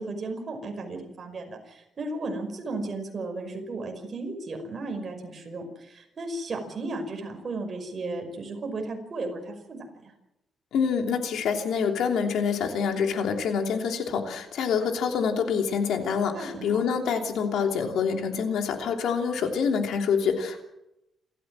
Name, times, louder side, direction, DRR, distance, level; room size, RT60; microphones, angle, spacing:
voice 1, 0.0-10.1 16.3-16.8, right 2 dB, 40° right, 4 dB, 5.5 m, -35 dB
voice 2, 10.7-20.6, left 6 dB, 85° left, 4 dB, 3.1 m, -26 dB
28.5 x 14.5 x 7.6 m, 0.88 s
cardioid pair, 140°, 0 cm